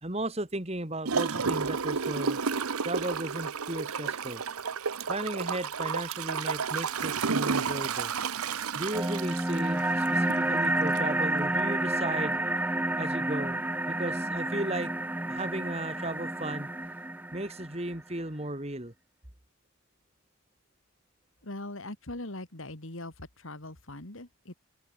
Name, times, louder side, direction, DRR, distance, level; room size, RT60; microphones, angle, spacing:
voice 1, 0.0-2.4 2.8-4.4 5.1-8.1 8.7-12.4 13.0-13.6 13.9-14.9 15.3-16.7 17.3-18.9, right 1 dB, 30° right, 2.3 m, -35 dB
Gurgling / Toilet flush, 1.0-10.5 10.9-11.0, right 5 dB, 85° right, 1.0 m, -31 dB
sound 1, 8.9-17.9, right 1 dB, 10° right, 0.5 m, -30 dB
voice 2, 21.4-24.5, left 2 dB, 65° left, 2.7 m, -41 dB
open air
head